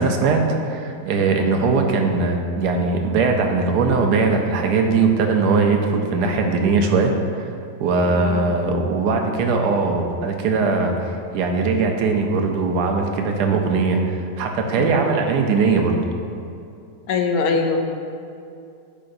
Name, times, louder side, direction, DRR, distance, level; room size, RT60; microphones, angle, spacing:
voice 1, 0.0-7.5 7.8-16.0, right 4 dB, 80° right, 3 dB, 1.2 m, -20 dB
voice 2, 8.1-8.8 14.7-15.0 17.1-17.8, left 4 dB, 75° left, 4 dB, 1.1 m, -23 dB
8.5 x 5.5 x 2.6 m, 2.5 s
omnidirectional pair, 1.8 m